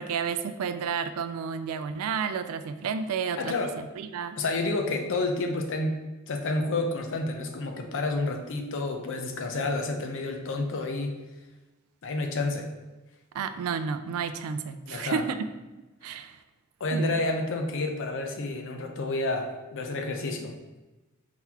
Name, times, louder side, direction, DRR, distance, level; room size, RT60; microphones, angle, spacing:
voice 1, 0.0-3.5 4.0-4.4 13.3-15.5 16.0-16.4 16.9-17.2, right 6 dB, 75° right, 10 dB, 0.3 m, -31 dB
voice 2, 3.4-3.8 4.4-6.0 6.3-11.1 12.0-12.7 14.9-15.2 16.8-20.5, left 2 dB, 60° left, 4 dB, 0.6 m, -29 dB
4.5 x 3.8 x 2.8 m, 1.1 s
head